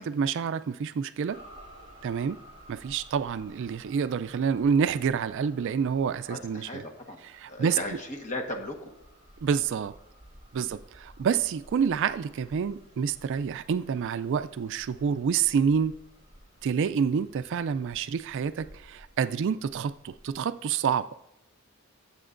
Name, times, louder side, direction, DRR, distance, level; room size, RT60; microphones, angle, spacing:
voice 1, 0.0-1.4 2.0-2.4 2.7-6.8 7.4-7.8 9.4-9.9 10.5-15.9 16.6-21.1, right 6 dB, 55° right, 0.3 m, -28 dB
sound 1, 1.3-20.4, equal, 30° right, 3.9 m, -54 dB
voice 2, 6.3-7.2 7.5-8.9 10.5-10.7 16.7-16.8, left 1 dB, 35° left, 1.3 m, -37 dB
18.5 x 7.8 x 2.5 m
head